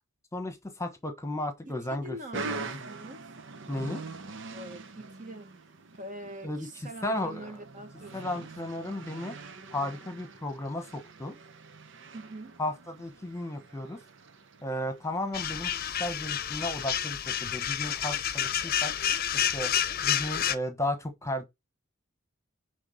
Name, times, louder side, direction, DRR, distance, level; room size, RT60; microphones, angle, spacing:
voice 1, 0.3-2.8 3.7-4.0 6.4-6.7 7.0-7.6 8.1-9.4 9.7-11.4 12.6-14.0 14.6-15.7 16.0-18.9 19.3-19.7 20.0-21.4, left 1 dB, 15° left, 1.2 m, -34 dB
voice 2, 1.9-3.2 4.5-5.5 5.9-8.5 12.1-12.6, right 1 dB, 40° right, 1.6 m, -44 dB
sound 1, 2.3-16.7, right 4 dB, 65° right, 0.9 m, -44 dB
sound 2, 15.3-20.5, left 10 dB, 50° left, 0.7 m, -29 dB
9.8 x 3.5 x 5.1 m
head